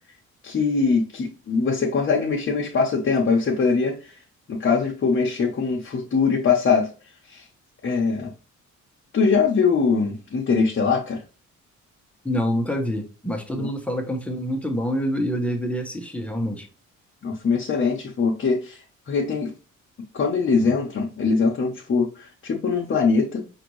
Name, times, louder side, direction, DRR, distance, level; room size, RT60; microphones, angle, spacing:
voice 1, 0.4-4.1 4.5-6.9 7.3-7.4 7.8-8.3 9.1-11.2 13.6-13.7 17.2-18.8 19.1-19.5 20.1-23.4, left 5 dB, 40° left, 0.9 m, -22 dB
voice 2, 12.2-16.7, equal, 5° left, 1.0 m, -26 dB
5.0 x 2.6 x 3.0 m
cardioid pair, 90°, 30 cm